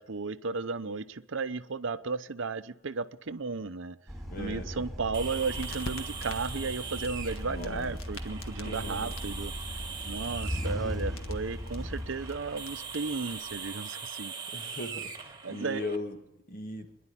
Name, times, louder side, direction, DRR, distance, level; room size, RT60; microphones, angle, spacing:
voice 1, 0.0-4.0 4.4-14.7 15.4-15.9, right 4 dB, 65° right, 0.7 m, -34 dB
sound 1, 4.1-13.1, equal, ahead, 4.0 m, -38 dB
voice 2, 4.3-4.7 7.5-7.9 8.6-9.1 14.5-16.2 16.5-16.9, left 2 dB, 45° left, 2.1 m, -38 dB
sound 2, 5.1-16.0, right 6 dB, 20° right, 1.9 m, -41 dB
sound 3, 5.6-13.7, left 2 dB, 80° left, 1.6 m, -48 dB
25.0 x 11.0 x 9.8 m
head